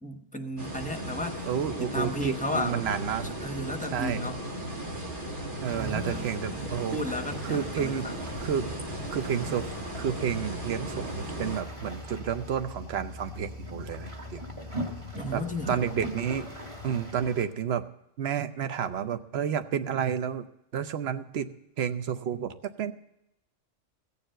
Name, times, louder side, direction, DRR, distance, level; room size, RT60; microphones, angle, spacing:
voice 1, 0.0-1.5 1.8-2.9 3.2-4.4 5.7-8.2 15.1-15.9, left 1 dB, 5° left, 6 dB, 0.9 m, -34 dB
sound 1, 0.6-11.6, right 1 dB, 45° right, 2.0 m, -36 dB
voice 2, 1.5-3.5 3.9-4.2 5.6-7.0 7.4-8.1 8.4-8.7 9.1-9.7 9.9-14.4 15.3-15.4 15.7-17.9 18.2-20.4 20.7-21.5 21.8-22.9, right 8 dB, 60° right, 11 dB, 0.9 m, -31 dB
sound 2, 5.6-17.5, equal, 25° right, 1.6 m, -41 dB
16.0 x 7.0 x 7.7 m, 0.85 s
omnidirectional pair, 1.3 m